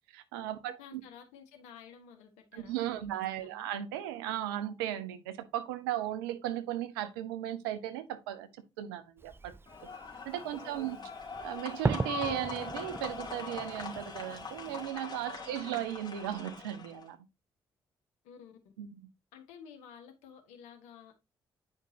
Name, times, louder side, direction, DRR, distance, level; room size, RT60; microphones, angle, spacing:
voice 1, 0.1-1.0 2.5-8.5 8.8-9.5 10.2-11.0 11.4-17.2 18.8-18.9, right 12 dB, 85° right, 0.8 m, -36 dB
voice 2, 0.6-3.7 10.6-11.1 15.4-15.8 18.2-18.7 19.3-21.1, left 7 dB, 75° left, 1.5 m, -53 dB
Fireworks, 9.2-14.9, right 4 dB, 20° right, 0.4 m, -39 dB
sound 1, 9.7-17.0, left 5 dB, 35° left, 2.9 m, -42 dB
9.7 x 5.3 x 2.8 m
hypercardioid pair, 40°, 12 cm